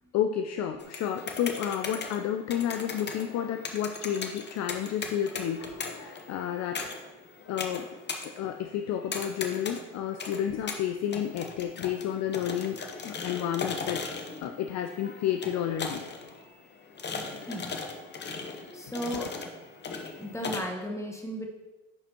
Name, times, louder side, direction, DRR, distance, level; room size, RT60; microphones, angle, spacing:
voice 1, 0.1-7.0 7.5-7.9 8.4-14.0 14.4-16.0 19.1-19.2, left 10 dB, 45° left, 6 dB, 0.5 m, -31 dB
sound 1, 0.8-20.6, left 4 dB, 25° left, 0.9 m, -39 dB
voice 2, 17.5-17.8 18.7-19.3 20.2-21.5, equal, 5° left, 0 dB, 1.3 m, -35 dB
10.5 x 4.1 x 2.9 m, 1.1 s
hypercardioid pair, 75°, 40 cm